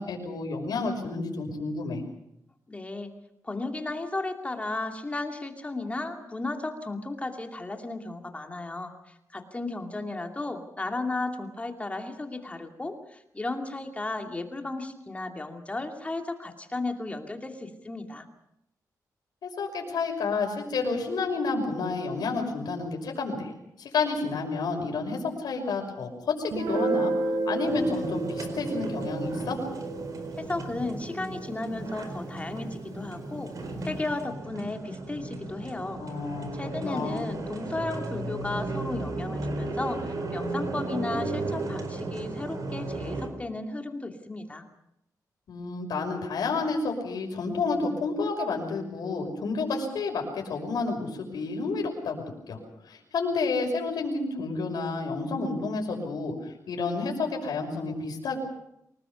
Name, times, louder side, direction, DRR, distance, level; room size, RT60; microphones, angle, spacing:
voice 1, 0.0-2.0 19.4-23.5 23.8-27.1 27.5-29.6 36.0-36.5 36.8-37.3 45.5-52.6 52.9-56.3 56.7-58.4, left 4 dB, 85° left, 2 dB, 5.9 m, -30 dB
voice 2, 2.7-3.1 3.4-18.3 30.4-33.5 33.8-36.0 36.5-44.7, left 2 dB, 20° left, 4 dB, 2.5 m, -34 dB
Guitar, 26.5-32.0, right 3 dB, 85° right, 5.2 m, -32 dB
sound 1, 27.6-43.3, right 2 dB, 60° right, 4.7 m, -35 dB
25.0 x 19.5 x 7.0 m, 0.79 s
wide cardioid pair, 120°, 7 cm